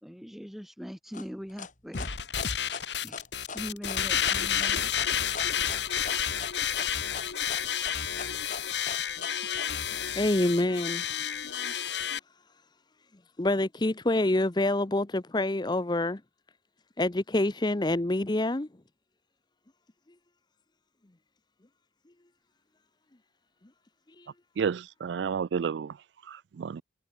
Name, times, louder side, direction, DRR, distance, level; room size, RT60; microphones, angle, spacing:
voice 1, 0.0-2.1 3.0-3.2 3.5-4.9, equal, ahead, 2.8 m, -41 dB
sound 1, 1.1-9.7, left 5 dB, 45° left, 3.2 m, -40 dB
sound 2, 1.9-12.2, left 9 dB, 65° left, 2.5 m, -30 dB
voice 2, 9.9-11.0 13.4-16.2 17.0-18.7 24.2-24.3, left 1 dB, 25° left, 0.7 m, -27 dB
voice 3, 24.6-26.0 26.2-26.8, right 6 dB, 70° right, 0.3 m, -31 dB
head